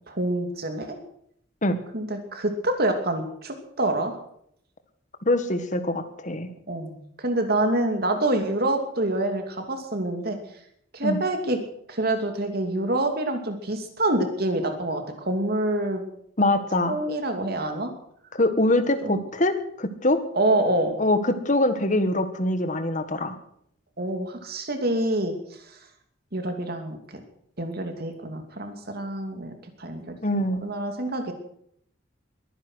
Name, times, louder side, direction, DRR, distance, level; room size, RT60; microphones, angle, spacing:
voice 1, 0.1-1.0 1.9-4.2 6.7-10.4 10.9-11.6 11.9-16.0 16.9-17.9 19.0-19.2 20.3-20.9 24.0-25.8 26.3-27.2 27.6-31.3, right 1 dB, 50° right, 5 dB, 2.7 m, -27 dB
voice 2, 5.2-6.5 11.0-11.2 16.4-17.0 18.3-20.2 21.0-23.3 30.2-30.6, left 1 dB, 40° left, 9 dB, 1.6 m, -23 dB
22.0 x 10.0 x 6.3 m, 0.70 s
head